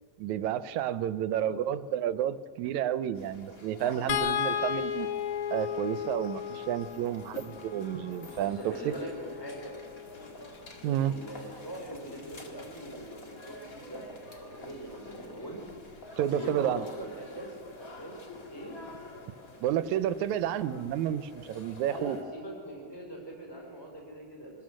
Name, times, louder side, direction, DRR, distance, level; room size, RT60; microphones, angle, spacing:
voice 1, 0.2-5.1 5.5-8.9 10.8-11.1 16.2-16.8 19.6-22.2, right 11 dB, 80° right, 14 dB, 2.0 m, -30 dB
voice 2, 1.2-1.6 8.4-9.8 10.9-14.0 14.4-15.6 16.2-18.2 18.5-18.7 21.8-24.6, right 1 dB, 10° left, -1 dB, 4.9 m, -42 dB
sound 1, 3.1-22.2, left 2 dB, 35° left, 1.9 m, -48 dB
sound 2, 4.1-10.4 11.9-12.1 12.5-12.6, left 9 dB, 60° left, 1.6 m, -35 dB
25.5 x 20.0 x 6.4 m, 2.1 s
omnidirectional pair, 3.3 m